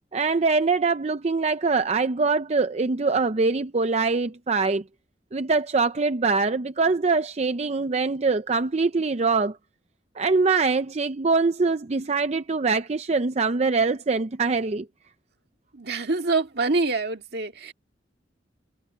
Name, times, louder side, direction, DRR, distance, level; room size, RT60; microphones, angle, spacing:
voice 1, 0.1-4.8 5.3-9.6 10.2-14.9, right 4 dB, 40° right, 0.5 m, -23 dB
voice 2, 15.7-17.7, right 3 dB, 65° right, 2.1 m, -25 dB
head